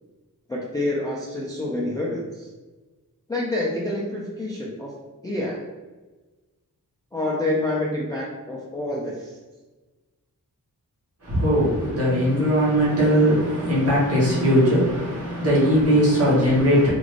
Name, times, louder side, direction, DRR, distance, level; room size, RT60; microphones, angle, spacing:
voice 1, 0.5-2.5 3.3-4.9 5.2-5.6 7.1-9.4, left 1 dB, 10° left, -4 dB, 0.3 m, -27 dB
voice 2, 11.2-16.9, equal, 40° right, -7 dB, 1.0 m, -19 dB
3.1 x 2.5 x 2.4 m, 1.2 s
wide cardioid pair, 170°, 35 cm